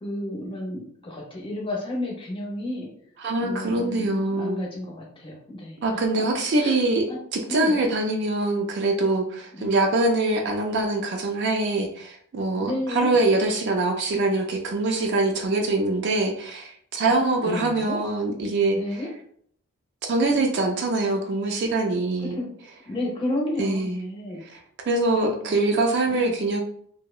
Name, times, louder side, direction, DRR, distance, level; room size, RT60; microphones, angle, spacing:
voice 1, 0.0-2.9 3.4-5.8 6.2-6.3 6.6-6.8 7.1-7.2 7.5-7.8 9.5-9.7 12.5-13.2 17.0-18.0 18.7-19.1 22.3-22.5 22.9-24.4 25.1-25.5 26.1-26.3, left 1 dB, 25° left, -3 dB, 0.6 m, -31 dB
voice 2, 3.2-4.7 5.8-7.1 7.3-19.0 20.1-22.4 23.6-24.0 24.5-24.6 24.9-26.6, right 2 dB, 50° right, 3 dB, 0.3 m, -24 dB
2.7 x 2.0 x 2.3 m, 0.63 s
head